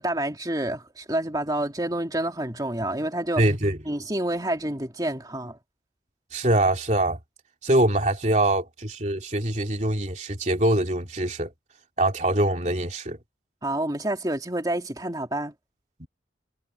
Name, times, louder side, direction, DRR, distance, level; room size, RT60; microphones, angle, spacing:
voice 1, 0.0-3.4 3.9-5.6 13.6-15.5, right 1 dB, 20° right, 2.6 m, -28 dB
voice 2, 3.4-3.8 6.3-7.2 7.6-11.5 12.0-13.2 16.0-16.1, right 1 dB, 40° right, 3.3 m, -23 dB
head